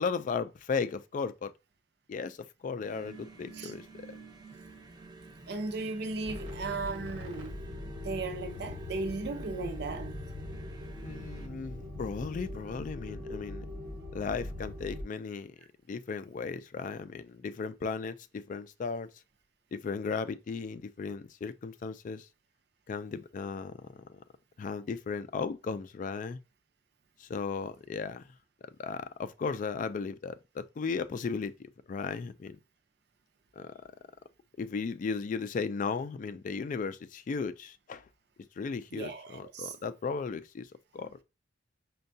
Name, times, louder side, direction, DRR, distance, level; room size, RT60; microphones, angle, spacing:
voice 1, 0.0-1.5 2.1-4.1 11.0-13.7 14.1-15.6 15.9-19.1 19.7-22.3 22.9-24.2 24.6-26.4 27.2-28.3 28.8-32.6 33.6-33.7 34.6-38.0 38.6-40.7 40.9-41.2, left 5 dB, 45° left, 0.3 m, -36 dB
sound 1, 2.8-11.5, right 3 dB, 25° right, 0.7 m, -50 dB
voice 2, 5.5-7.6 8.0-10.1 38.9-39.7, right 3 dB, 60° right, 0.5 m, -36 dB
sound 2, 6.2-15.0, left 1 dB, 85° right, 1.1 m, -41 dB
5.3 x 2.2 x 2.6 m
head